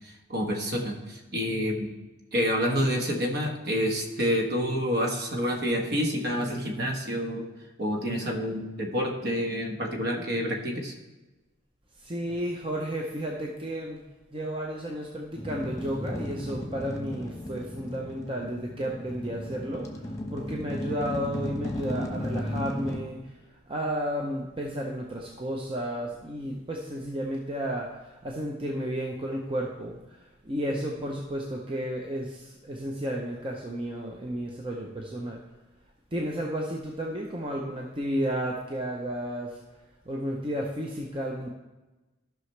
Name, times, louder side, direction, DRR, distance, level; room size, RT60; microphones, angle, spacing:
voice 1, 0.3-1.9 2.3-7.4 7.8-10.9, equal, 50° right, 2 dB, 1.3 m, -28 dB
voice 2, 12.0-14.0 14.3-23.3 23.7-35.4 36.1-39.6 40.1-41.5, equal, 25° right, 0 dB, 0.6 m, -32 dB
sound 1, 15.3-23.0, left 1 dB, 15° left, 1.0 m, -35 dB
14.0 x 5.8 x 3.3 m, 1.1 s
head